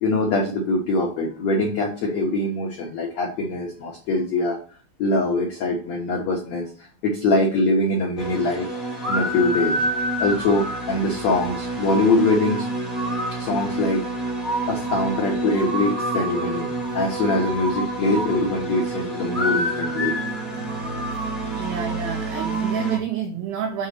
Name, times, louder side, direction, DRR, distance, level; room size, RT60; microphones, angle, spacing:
voice 1, 0.0-4.6 5.0-8.7 9.1-9.8 10.2-12.7 13.4-14.0 14.7-16.7 16.9-20.2, left 2 dB, 80° left, 1.5 m, -23 dB
sound 1, 8.2-23.0, right 1 dB, ahead, 0.4 m, -27 dB
voice 2, 21.4-23.9, right 8 dB, 85° right, 2.1 m, -30 dB
7.4 x 4.1 x 6.6 m
omnidirectional pair, 5.1 m